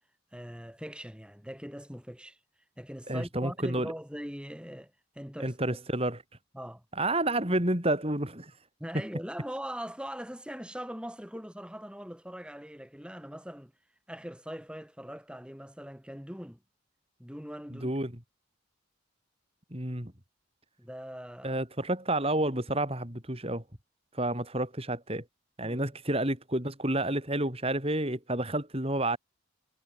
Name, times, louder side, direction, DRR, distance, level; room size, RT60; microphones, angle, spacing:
voice 1, 0.3-2.4 2.8-5.6 6.5-6.8 8.8-13.7 14.1-16.6 17.2-17.9 20.8-21.6 25.6-26.0, equal, 5° right, 5.8 m, -41 dB
voice 2, 3.1-3.9 5.4-6.2 6.9-8.5 17.7-18.1 19.7-20.1 21.4-23.6 24.1-25.2 25.6-29.2, right 1 dB, 30° right, 5.2 m, -30 dB
head